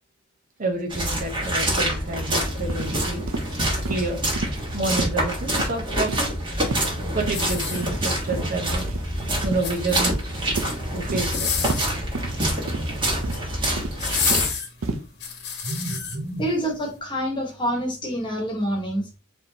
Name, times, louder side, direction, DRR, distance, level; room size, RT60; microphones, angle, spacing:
voice 1, 0.6-3.2 3.9-4.2 4.4-6.3 7.1-8.9 9.4-10.2 10.9-11.6 15.6-16.5, right 2 dB, 40° right, 3 dB, 0.9 m, -29 dB
sound 1, 0.9-14.5, right 1 dB, 25° right, 1.5 m, -26 dB
sound 2, 2.7-2.9 3.3-3.4 3.8-4.0 4.4-4.5 4.9-5.1 5.5-5.7 6.1-6.3 6.6-6.9 7.2-7.4 7.7-7.9 8.3-8.5 8.9-9.0 9.4-9.6 10.0-10.2 10.6-10.7 11.1-11.2 11.6-11.8 12.1-12.3 12.7-12.9 13.2-13.4 13.8-14.5 14.8-15.0, right 2 dB, 80° right, 0.7 m, -29 dB
sound 3, 7.3-8.3 9.4-10.2 11.1-11.9 13.0-13.5 14.0-16.2 16.7-16.9, left 6 dB, 55° left, 1.1 m, -29 dB
voice 2, 16.4-19.1, equal, 25° left, 0 dB, 1.3 m, -26 dB
4.4 x 3.5 x 2.8 m, 0.33 s
head